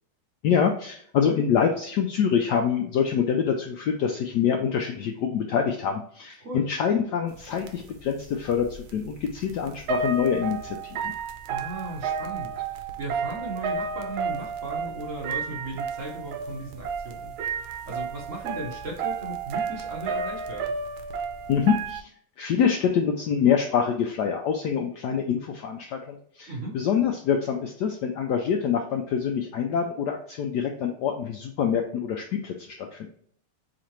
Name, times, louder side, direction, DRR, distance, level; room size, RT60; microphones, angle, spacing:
voice 1, 0.4-10.8 11.0-11.1 21.5-22.1 22.4-33.1, left 7 dB, 75° left, 3 dB, 0.9 m, -25 dB
sound 1, 7.4-7.5 7.7-22.0, right 5 dB, 80° right, 1.4 m, -32 dB
voice 2, 11.5-17.3 17.9-20.7 26.5-26.7, right 2 dB, 50° right, -2 dB, 1.0 m, -37 dB
4.2 x 3.8 x 3.0 m, 0.63 s
omnidirectional pair, 2.3 m